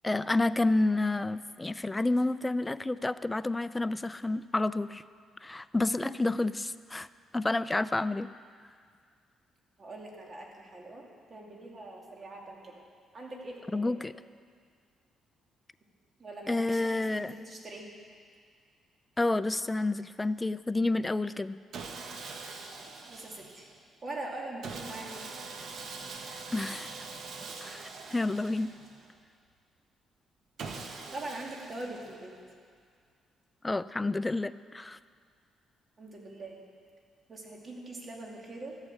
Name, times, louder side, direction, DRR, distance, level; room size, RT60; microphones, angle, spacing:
voice 1, 0.0-5.0 5.4-7.1 7.3-8.3 13.7-14.1 16.5-17.3 19.2-21.6 26.5-27.1 27.6-28.7 33.6-35.0, left 2 dB, 15° left, 15 dB, 0.4 m, -29 dB
voice 2, 6.0-6.4 9.8-11.0 11.3-12.7 13.1-14.0 16.2-17.9 23.1-23.7 24.0-25.2 25.6-25.7 31.1-32.3 36.0-36.6 37.3-38.8, right 2 dB, 35° right, -1 dB, 2.5 m, -42 dB
Sawing, 21.7-23.8 24.6-29.2 30.6-32.4, right 4 dB, 70° right, 1.2 m, -43 dB
13.0 x 8.9 x 7.1 m, 2.1 s
cardioid pair, 90°, 0 cm